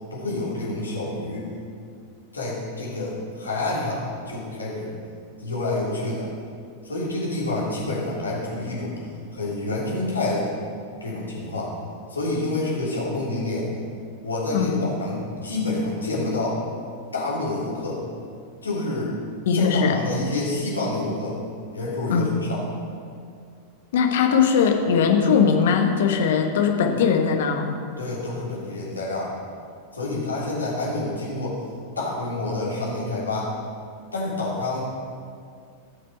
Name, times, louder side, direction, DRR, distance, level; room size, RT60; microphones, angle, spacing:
voice 1, 0.1-1.5 2.3-4.9 5.4-6.3 6.8-9.0 9.3-10.5 11.0-11.7 12.1-13.7 14.2-16.6 17.1-18.0 18.6-19.1 19.5-21.3 21.7-22.6 28.0-29.3 29.9-31.6 31.9-33.5 34.1-34.8, left 2 dB, 75° left, -6 dB, 3.2 m, -28 dB
voice 2, 14.5-14.9 19.5-20.0 22.1-22.4 23.9-27.7, left 6 dB, 55° left, 4 dB, 1.2 m, -20 dB
16.0 x 6.6 x 4.5 m, 2.2 s
figure-of-eight pair, 90°, 0 cm